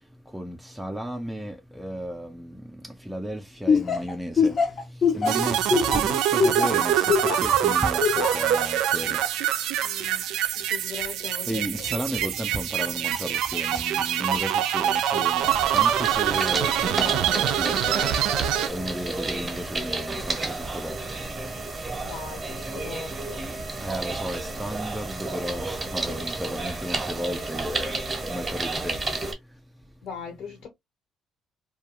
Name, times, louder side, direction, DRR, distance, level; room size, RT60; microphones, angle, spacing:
voice 1, 0.3-2.6 3.1-4.6 5.1-9.2 11.5-15.4 15.7-18.1 18.7-21.0 23.8-28.0 28.2-29.0, equal, 5° right, 0.4 m, -33 dB
Laughter, 3.7-7.5 8.0-8.5, left 5 dB, 45° left, 0.6 m, -22 dB
sound 1, 5.3-18.7, right 11 dB, 90° right, 0.3 m, -25 dB
voice 2, 9.8-10.2 10.5-12.1 22.0-23.4 30.0-30.7, left 6 dB, 70° left, 1.2 m, -40 dB
sound 2, 15.4-29.3, right 3 dB, 25° right, 0.8 m, -31 dB
2.3 x 2.2 x 2.8 m
cardioid pair, 115°, 0 cm